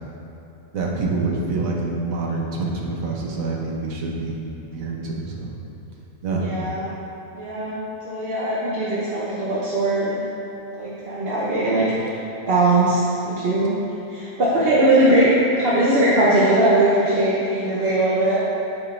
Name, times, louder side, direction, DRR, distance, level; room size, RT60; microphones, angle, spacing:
voice 1, 0.7-4.4 4.7-5.5 6.2-6.5, right 3 dB, 65° right, -2 dB, 1.3 m, -26 dB
voice 2, 6.4-6.9 7.3-10.2 10.8-12.2 12.5-13.7 14.1-15.3 15.6-18.4, right 1 dB, 45° right, -7 dB, 1.0 m, -20 dB
12.0 x 5.1 x 2.6 m, 2.9 s
omnidirectional pair, 1.6 m